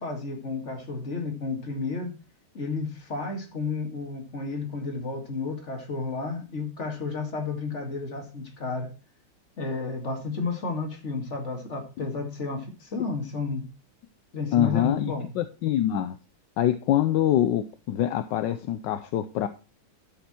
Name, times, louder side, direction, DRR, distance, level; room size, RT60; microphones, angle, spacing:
voice 1, 0.0-2.1 2.5-8.9 9.6-13.7 14.3-15.3, left 4 dB, 30° left, 3 dB, 2.5 m, -32 dB
voice 2, 14.5-16.1 16.6-19.5, left 11 dB, 70° left, 11 dB, 1.1 m, -25 dB
11.5 x 6.9 x 4.3 m, 0.31 s
omnidirectional pair, 2.4 m